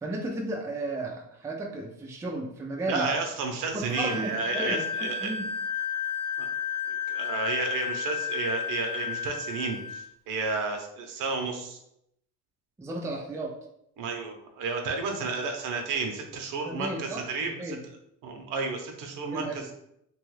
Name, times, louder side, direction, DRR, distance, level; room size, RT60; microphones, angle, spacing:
voice 1, 0.0-3.1 3.7-5.4 12.8-13.5 16.6-17.8 19.3-19.7, right 2 dB, 10° right, 0 dB, 0.3 m, -34 dB
voice 2, 2.9-5.3 6.4-6.5 6.9-11.8 14.0-17.8 18.2-19.7, right 4 dB, 70° right, 3 dB, 0.7 m, -32 dB
Wind instrument woodwind instrument, 3.9-10.1, left 7 dB, 55° left, 0.7 m, -32 dB
3.0 x 2.3 x 3.1 m, 0.77 s
cardioid pair, 135°, 33 cm